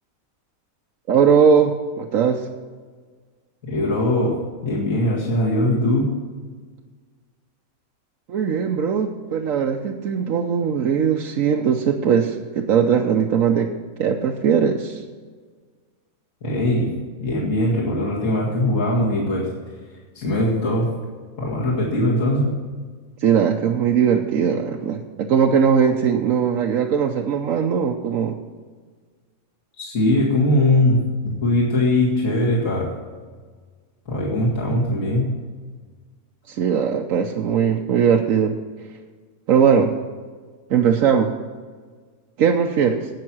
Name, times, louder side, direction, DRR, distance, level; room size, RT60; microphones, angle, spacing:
voice 1, 1.1-2.5 8.3-13.7 14.0-15.0 23.2-28.4 36.5-38.6 39.5-39.9 40.7-41.3 42.4-43.1, right 7 dB, 70° right, 2 dB, 1.1 m, -19 dB
voice 2, 3.7-4.4 4.6-6.1 16.4-16.9 17.2-19.5 20.1-20.9 21.4-22.5 29.8-32.9 34.1-35.3, left 1 dB, 60° left, -5 dB, 2.4 m, -20 dB
17.0 x 6.0 x 6.1 m, 1.5 s
omnidirectional pair, 1.5 m